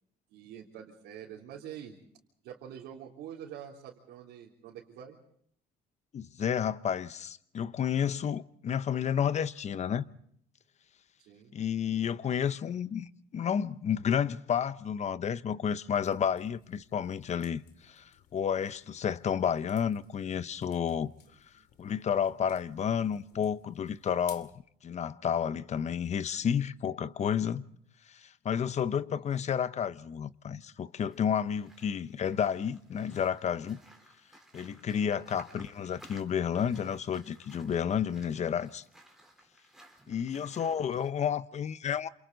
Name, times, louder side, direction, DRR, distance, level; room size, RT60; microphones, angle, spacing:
voice 1, 0.3-2.0 2.4-5.2 11.2-11.5 21.6-21.7 29.1-29.3 35.0-35.2 40.1-40.3, right 9 dB, 90° right, 3.5 m, -46 dB
voice 2, 6.1-10.0 11.5-21.1 21.8-24.5 24.8-27.6 28.1-33.8 34.5-38.8 40.1-42.1, left 8 dB, 40° left, 0.9 m, -31 dB
sound 1, 16.0-24.6, left 10 dB, 75° left, 2.4 m, -58 dB
sound 2, 31.0-41.1, right 1 dB, ahead, 3.9 m, -57 dB
28.5 x 28.0 x 4.0 m
cardioid pair, 110°, 17 cm